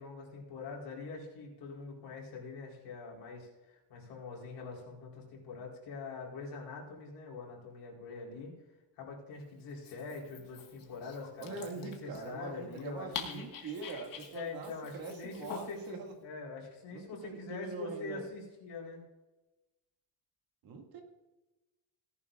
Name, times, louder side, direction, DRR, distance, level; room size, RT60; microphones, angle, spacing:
voice 1, 0.0-8.5 8.9-13.5 14.3-19.0, left 4 dB, 75° left, -2 dB, 4.3 m, -44 dB
Dog, 9.7-15.9, left 7 dB, 50° left, 1.8 m, -47 dB
voice 2, 11.4-16.1 16.9-18.2 20.6-21.0, right 4 dB, 55° right, 2 dB, 2.3 m, -43 dB
18.0 x 11.0 x 2.5 m, 1.1 s
cardioid pair, 170°, 42 cm